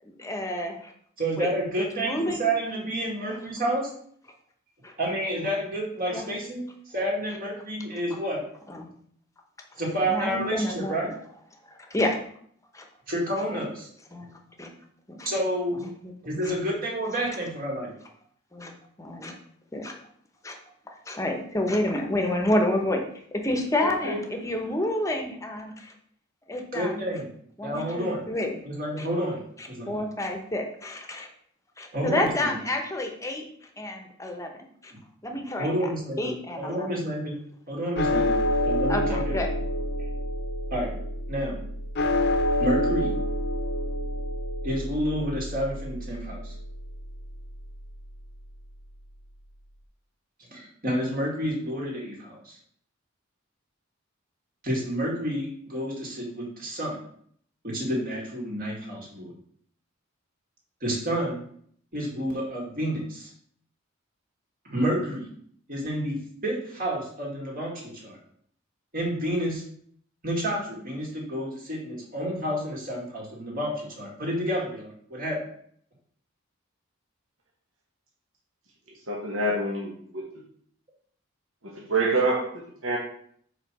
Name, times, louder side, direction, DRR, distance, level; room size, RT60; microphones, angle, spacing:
voice 1, 0.0-0.9 1.4-1.5 2.0-2.5 4.8-4.9 6.1-6.3 8.7-8.9 10.0-11.1 11.9-12.2 12.7-12.8 13.5-13.6 14.1-14.7 15.1-15.3 15.7-16.5 18.5-19.3 19.7-19.9 20.4-20.6 21.1-23.0 23.3-25.9 26.5-27.0 27.6-28.6 29.0-29.1 29.6-31.3 31.8-33.4 33.8-34.9 35.2-35.7 36.2-36.9 38.9-39.5, left 1 dB, 15° left, 3 dB, 0.9 m, -29 dB
voice 2, 1.2-3.9 5.0-8.4 9.8-11.1 13.1-13.9 15.2-15.9 16.2-17.9 26.7-27.3 27.6-28.3 28.6-30.0 31.9-32.5 35.6-37.4 37.7-38.4 38.6-39.4 40.7-40.9 41.3-41.6 42.6-43.2 44.6-46.6 50.5-52.6 54.6-57.0 57.6-59.3 60.8-61.4 61.9-63.3 64.6-65.3 65.7-68.2 68.9-69.6 70.2-75.5, right 1 dB, 45° right, -2 dB, 2.1 m, -29 dB
voice 3, 23.8-24.2 79.1-80.3 81.7-83.0, right 2 dB, 70° right, -2 dB, 1.3 m, -27 dB
sound 1, 38.0-48.4, left 1 dB, 50° left, 0.7 m, -28 dB
4.9 x 4.4 x 6.1 m, 0.63 s
head